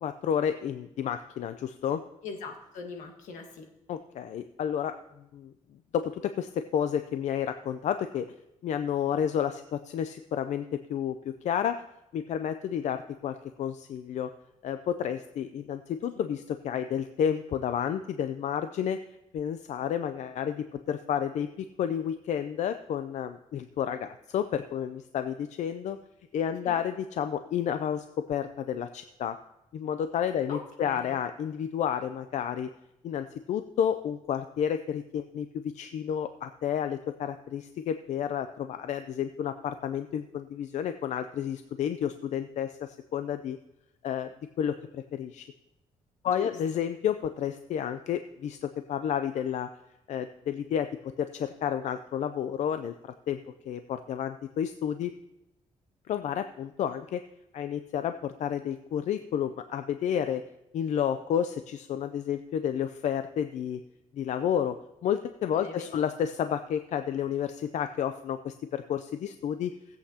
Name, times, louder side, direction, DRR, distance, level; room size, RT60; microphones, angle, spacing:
voice 1, 0.0-2.0 3.9-4.9 5.3-5.5 5.9-8.3 8.6-11.8 12.1-14.3 14.6-19.0 19.3-26.0 26.3-29.4 29.7-32.7 33.0-43.6 44.0-44.3 44.6-45.5 46.2-49.7 50.1-53.4 53.7-55.1 56.1-57.2 57.5-60.4 60.7-63.8 64.1-64.8 65.0-69.7, left 9 dB, 70° left, 9 dB, 0.5 m, -31 dB
voice 2, 2.2-3.7 16.1-16.3 26.5-26.8 30.5-31.2 46.4-46.9 65.5-65.9, left 4 dB, 90° left, 4 dB, 1.5 m, -41 dB
18.5 x 8.1 x 2.8 m, 0.86 s
cardioid pair, 100°, 13 cm